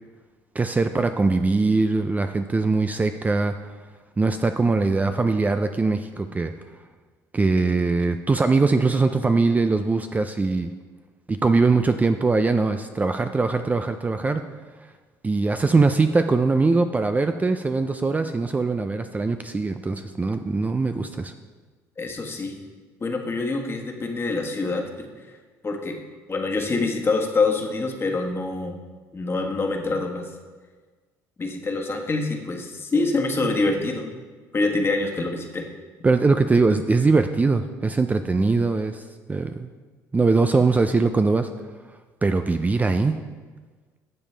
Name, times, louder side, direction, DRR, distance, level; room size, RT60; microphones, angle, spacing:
voice 1, 0.5-3.5 4.2-6.5 7.3-10.7 11.3-14.4 15.2-21.3 36.0-39.0 39.3-39.7 40.1-41.5 42.2-43.2, right 3 dB, 20° right, 8 dB, 0.4 m, -21 dB
voice 2, 22.0-22.6 23.0-25.1 25.6-26.0 26.3-28.8 29.1-30.3 31.4-34.2 34.5-35.7, left 3 dB, 30° left, 2 dB, 1.4 m, -25 dB
12.0 x 7.2 x 3.3 m, 1.4 s
supercardioid pair, 80°, 8 cm